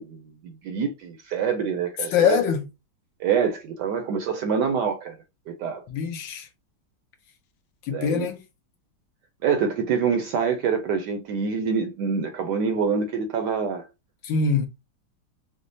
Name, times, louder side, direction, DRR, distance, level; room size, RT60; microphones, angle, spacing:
voice 1, 0.0-2.4 3.2-5.2 5.5-5.8 7.9-8.3 9.4-13.8, right 6 dB, 75° right, 1.0 m, -26 dB
voice 2, 2.1-2.7 5.9-6.5 7.8-8.4 14.2-14.7, left 6 dB, 70° left, 1.3 m, -23 dB
5.1 x 2.0 x 2.6 m
omnidirectional pair, 2.2 m